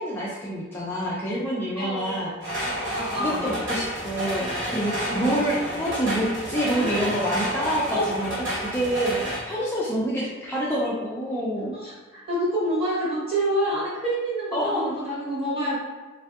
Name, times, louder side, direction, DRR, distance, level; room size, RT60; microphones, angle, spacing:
voice 1, 0.0-2.3 3.2-11.7 14.5-15.0, equal, 10° left, -7 dB, 0.4 m, -27 dB
voice 2, 1.8-2.2 2.9-3.6 5.0-5.4 6.8-6.9 7.9-8.1 11.7-15.8, right 1 dB, 30° right, -7 dB, 1.2 m, -27 dB
sound 1, 2.4-9.4, equal, 65° right, 1.0 m, -30 dB
3.4 x 2.5 x 2.4 m, 1.3 s
head